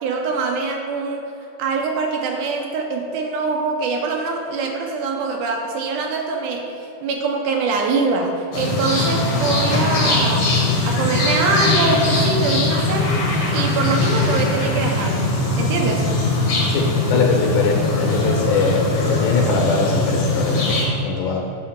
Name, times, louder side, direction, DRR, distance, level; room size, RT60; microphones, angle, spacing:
voice 1, 0.0-1.2 1.6-6.7 7.0-13.2 13.5-15.3 15.6-16.1, right 4 dB, 80° right, 2 dB, 2.0 m, -23 dB
sound 1, 8.5-20.8, left 2 dB, 60° left, 2.4 m, -20 dB
voice 2, 16.7-21.4, left 4 dB, 75° left, 0 dB, 2.1 m, -21 dB
8.5 x 4.4 x 5.7 m, 2.7 s
omnidirectional pair, 3.9 m